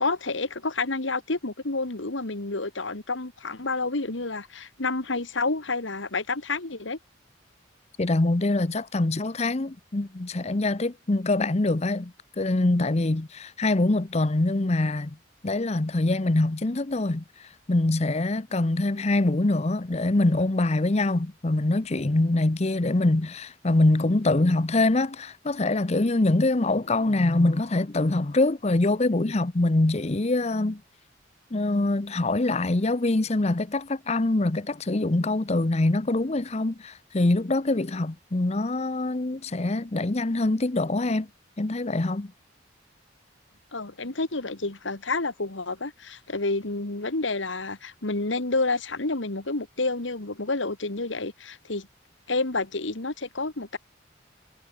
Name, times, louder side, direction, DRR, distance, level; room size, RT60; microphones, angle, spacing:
voice 1, 0.0-7.0 43.7-51.9 52.3-53.8, left 3 dB, 80° left, 2.1 m, -29 dB
voice 2, 8.0-15.2 15.4-17.2 17.7-30.8 31.5-41.3 41.6-42.3, left 2 dB, 35° left, 0.8 m, -24 dB
head